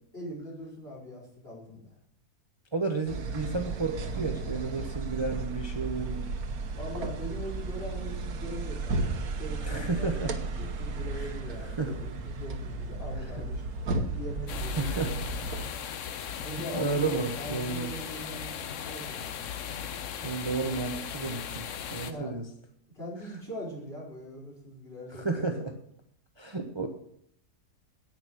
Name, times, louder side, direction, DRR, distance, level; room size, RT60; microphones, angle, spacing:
voice 1, 0.1-1.9 6.7-10.3 10.6-13.6 14.1-15.2 16.4-19.3 22.0-22.3 22.9-25.4, equal, 45° left, -3 dB, 5.0 m, -41 dB
voice 2, 2.7-6.3 9.7-10.3 11.2-11.3 11.8-11.9 14.8-15.3 16.4-16.5 16.7-17.9 20.2-21.7 21.9-22.5 25.1-25.7 26.4-26.9, right 3 dB, 20° right, 3 dB, 0.9 m, -32 dB
sound 1, 3.1-15.7, right 3 dB, 85° right, 1.5 m, -34 dB
sound 2, 14.5-22.1, left 8 dB, 65° left, 1.1 m, -37 dB
10.0 x 8.9 x 6.2 m, 0.70 s
omnidirectional pair, 1.5 m